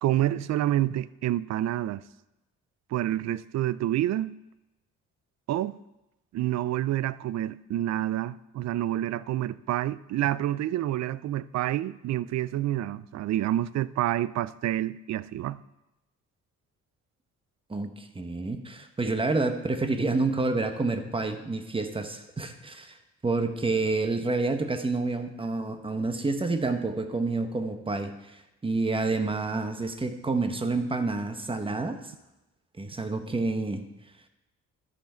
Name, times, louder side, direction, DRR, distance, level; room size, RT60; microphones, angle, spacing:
voice 1, 0.0-2.0 2.9-4.4 5.5-5.8 6.3-15.6, right 13 dB, 60° right, 0.4 m, -28 dB
voice 2, 17.7-23.0 23.2-32.1 32.8-33.8, right 3 dB, 15° right, 1.0 m, -29 dB
13.0 x 5.8 x 4.4 m
cardioid pair, 90°, 30 cm